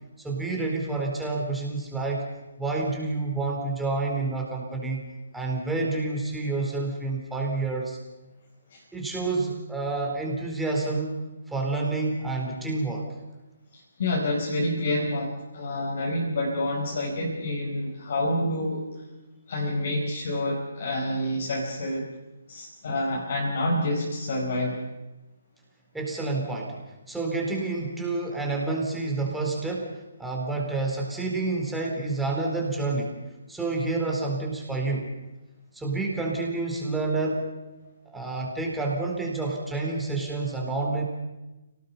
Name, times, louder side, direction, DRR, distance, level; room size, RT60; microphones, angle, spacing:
voice 1, 0.2-2.3 2.6-5.0 5.3-8.0 8.9-11.2 11.5-13.1 25.9-26.8 27.1-29.9 30.2-33.2 33.5-35.0 35.7-37.4 38.1-41.0, right 3 dB, 5° right, -2 dB, 4.2 m, -28 dB
voice 2, 13.7-19.0 19.5-22.1 22.5-24.8 37.8-37.9, left 1 dB, 50° left, -2 dB, 5.0 m, -28 dB
29.5 x 18.5 x 5.7 m, 1.1 s
figure-of-eight pair, 140°, 0 cm